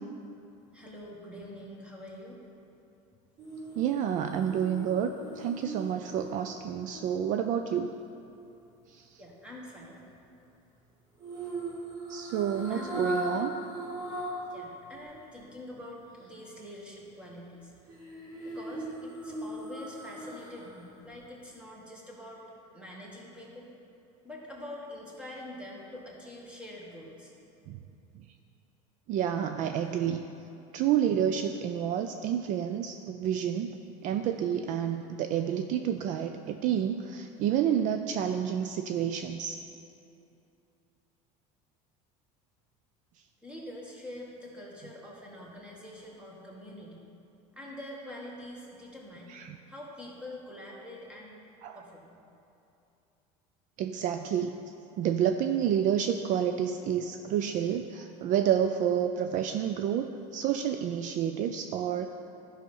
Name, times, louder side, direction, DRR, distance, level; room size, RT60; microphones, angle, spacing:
voice 1, 0.7-2.4 9.2-10.0 12.7-13.1 14.5-17.7 18.4-22.4 22.7-23.7 24.2-27.3 43.4-47.1 47.5-49.3 49.7-51.4 51.7-52.2, left 1 dB, 5° right, -3 dB, 1.8 m, -45 dB
ghostly moans, 3.4-7.6 11.2-14.6 15.0-15.1 17.9-20.8 21.1-21.2, right 1 dB, 20° right, 2.0 m, -39 dB
voice 2, 3.8-7.9 8.9-9.0 12.1-13.5 27.7-27.8 29.1-30.2 30.7-33.8 34.0-39.6 49.3-49.6 51.6-51.8 53.8-54.6 55.0-62.1, right 9 dB, 50° right, 7 dB, 0.4 m, -29 dB
12.0 x 5.6 x 5.4 m, 2.7 s
cardioid pair, 135°, 17 cm